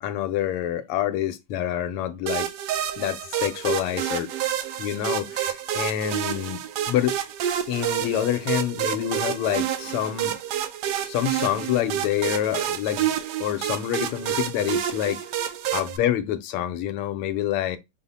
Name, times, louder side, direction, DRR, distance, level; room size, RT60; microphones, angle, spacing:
voice 1, 0.0-2.5 3.0-4.3 4.8-6.6 6.9-7.2 7.7-10.3 11.0-13.1 13.4-15.2 15.7-17.8, left 11 dB, 85° left, 1.6 m, -27 dB
sound 1, 2.3-16.0, right 10 dB, 80° right, 0.9 m, -29 dB
5.5 x 2.1 x 4.0 m
omnidirectional pair, 2.4 m